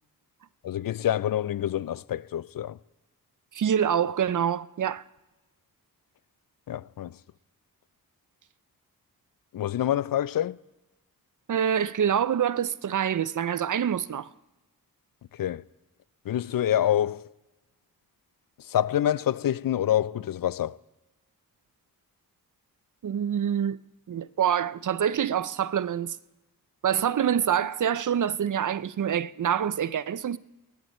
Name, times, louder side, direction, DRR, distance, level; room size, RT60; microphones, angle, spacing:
voice 1, 0.6-2.8 6.7-7.1 9.5-10.6 15.3-15.6 16.3-17.2 18.7-20.8, left 11 dB, 60° left, 0.5 m, -26 dB
voice 2, 3.5-5.0 11.5-14.3 23.0-23.8 24.1-26.2 26.8-30.4, right 9 dB, 55° right, 0.6 m, -26 dB
19.0 x 13.5 x 4.4 m
cardioid pair, 50°, 38 cm